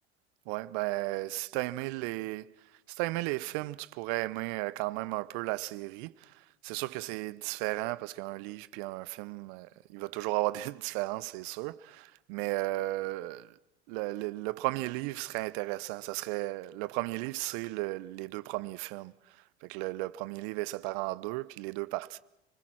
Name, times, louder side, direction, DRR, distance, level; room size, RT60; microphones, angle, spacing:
voice 1, 0.5-13.6 13.9-22.2, right 20 dB, 55° right, 0.9 m, -35 dB
29.0 x 21.0 x 6.3 m
hypercardioid pair, 80°, 31 cm